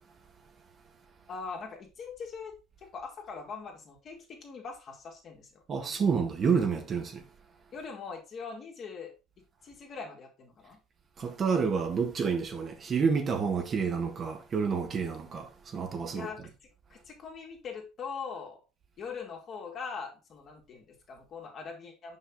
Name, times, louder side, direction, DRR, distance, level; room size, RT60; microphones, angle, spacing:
voice 1, 1.3-2.5 2.9-6.2 7.7-9.1 9.6-10.8 16.1-16.5 16.9-18.6 19.0-22.2, left 5 dB, 50° left, 2.3 m, -42 dB
voice 2, 5.7-7.2 11.2-16.3, right 6 dB, 45° right, 1.5 m, -29 dB
5.7 x 5.6 x 3.7 m
hypercardioid pair, 70°, 0 cm